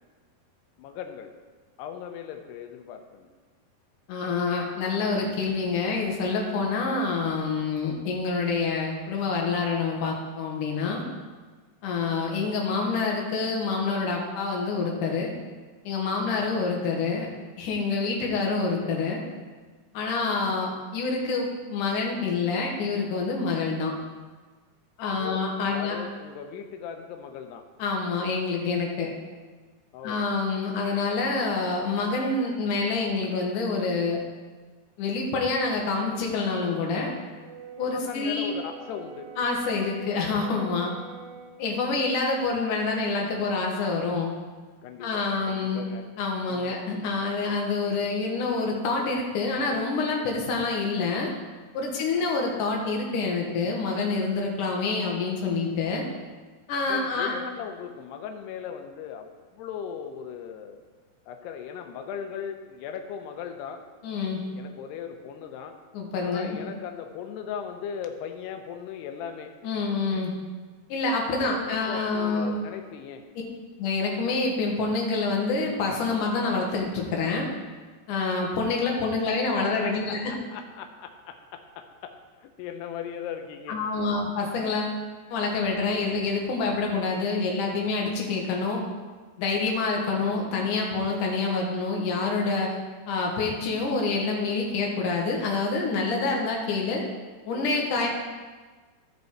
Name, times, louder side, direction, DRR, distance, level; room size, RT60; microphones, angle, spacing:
voice 1, 0.8-1.3 1.8-3.3 16.1-16.5 18.1-18.5 20.2-20.6 25.1-27.6 29.9-30.4 37.9-39.3 44.8-46.1 46.5-46.8 51.9-52.3 56.9-60.8 61.3-63.8 64.6-65.8 66.2-69.5 71.4-73.2 79.6-80.2 80.5-83.8 97.5-97.9, left 8 dB, 85° left, 5 dB, 2.8 m, -38 dB
voice 2, 4.1-11.0 11.8-15.3 15.8-17.3 17.6-19.2 19.9-23.9 25.0-26.0 27.8-29.1 30.0-34.2 35.0-37.1 37.8-38.5 39.4-40.9 41.6-44.3 45.0-45.8 46.2-51.3 51.7-56.0 56.7-57.4 64.0-64.4 65.9-66.6 69.6-70.3 70.9-72.6 73.8-77.5 78.1-80.3 83.7-85.0 85.3-88.8 89.4-92.8 93.1-97.0 97.5-98.1, left 4 dB, 60° left, -1 dB, 2.5 m, -27 dB
Brass instrument, 37.3-41.6, right 6 dB, 85° right, 2.9 m, -45 dB
14.5 x 5.3 x 4.6 m, 1.4 s
omnidirectional pair, 4.8 m